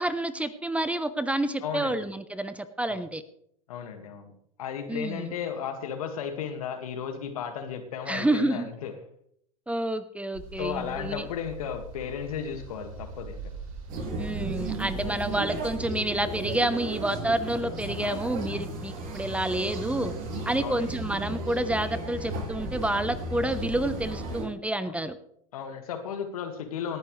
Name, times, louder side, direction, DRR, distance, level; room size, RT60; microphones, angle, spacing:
voice 1, 0.0-3.2 4.9-5.3 8.1-8.7 9.7-11.3 14.2-20.1 20.4-25.2, right 1 dB, 5° right, 13 dB, 0.9 m, -29 dB
voice 2, 1.6-2.0 2.9-3.0 3.7-4.3 4.6-8.9 10.6-13.4 18.0-18.3 20.6-20.9 24.8-24.9 25.5-27.0, left 7 dB, 80° left, 7 dB, 2.0 m, -34 dB
sound 1, 10.3-15.8, right 2 dB, 75° right, 6.4 m, -41 dB
sound 2, 13.9-24.4, right 2 dB, 50° right, 6.5 m, -35 dB
18.5 x 10.5 x 3.3 m, 0.69 s
hypercardioid pair, 95°, 18 cm